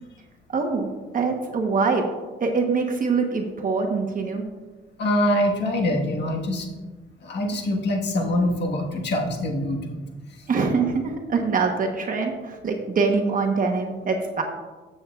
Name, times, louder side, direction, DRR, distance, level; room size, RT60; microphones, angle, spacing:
voice 1, 0.5-0.9 1.1-2.1 2.4-4.4 10.5-14.4, right 4 dB, 45° right, 3 dB, 1.0 m, -24 dB
voice 2, 5.0-6.7 7.2-10.0, left 1 dB, 60° left, 1 dB, 1.5 m, -24 dB
13.0 x 7.4 x 2.4 m, 1.3 s
cardioid pair, 90°, 20 cm